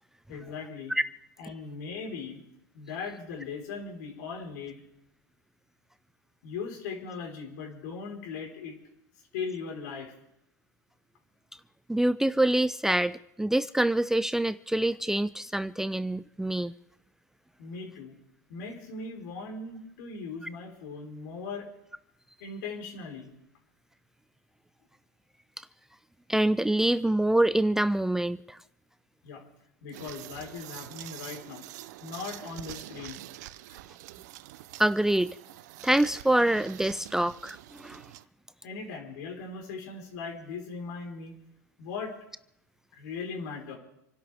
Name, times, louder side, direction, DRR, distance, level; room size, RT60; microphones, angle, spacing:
voice 1, 0.3-0.9 1.4-2.4 2.7-4.8 6.4-8.8 9.3-10.1 17.6-18.1 18.5-21.7 22.4-23.3 29.2-29.4 29.8-31.6 32.0-33.2 38.6-41.3 41.8-42.1 42.9-43.8, left 5 dB, 70° left, 1 dB, 4.5 m, -39 dB
voice 2, 11.9-16.7 26.3-28.6 34.8-35.3 35.8-38.0, right 1 dB, 5° right, 14 dB, 0.4 m, -25 dB
sound 1, 29.9-38.2, right 16 dB, 70° right, 0.7 m, -45 dB
28.0 x 12.0 x 3.5 m, 0.82 s
hypercardioid pair, 100°, 10 cm